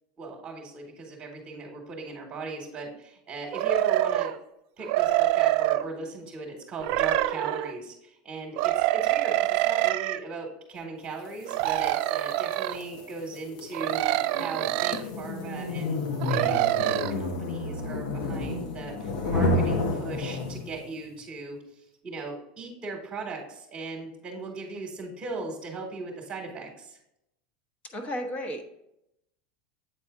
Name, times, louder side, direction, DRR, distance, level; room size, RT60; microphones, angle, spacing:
voice 1, 0.2-4.3 4.8-27.0, right 3 dB, 25° right, 0 dB, 1.2 m, -38 dB
sound 1, 3.5-4.4 4.8-5.8 6.8-7.7 8.6-10.2 11.5-12.8 13.7-15.0 16.2-17.1, right 15 dB, 60° right, 0.3 m, -25 dB
sound 2, 11.5-20.9, left 2 dB, 75° left, 1.2 m, -31 dB
voice 2, 27.8-28.7, equal, 35° left, 5 dB, 1.1 m, -33 dB
8.3 x 4.2 x 3.6 m, 0.84 s
supercardioid pair, 135°, 4 cm